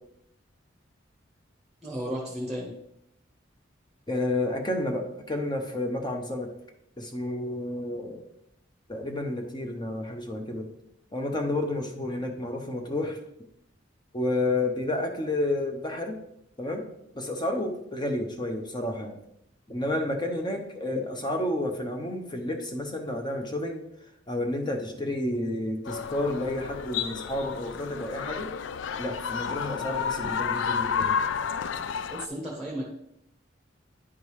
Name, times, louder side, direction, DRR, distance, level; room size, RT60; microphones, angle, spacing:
voice 1, 1.8-2.7 20.9-21.0 32.1-32.9, equal, ahead, -3 dB, 1.3 m, -34 dB
voice 2, 4.1-6.5 7.0-8.2 8.9-10.7 11.1-13.2 14.1-16.2 16.6-16.8 17.1-19.2 19.7-23.8 24.3-28.5 29.0-31.2, left 1 dB, 25° left, 4 dB, 1.0 m, -30 dB
sound 1, 25.9-32.3, left 6 dB, 70° left, 0.4 m, -31 dB
9.8 x 3.8 x 4.8 m, 0.77 s
head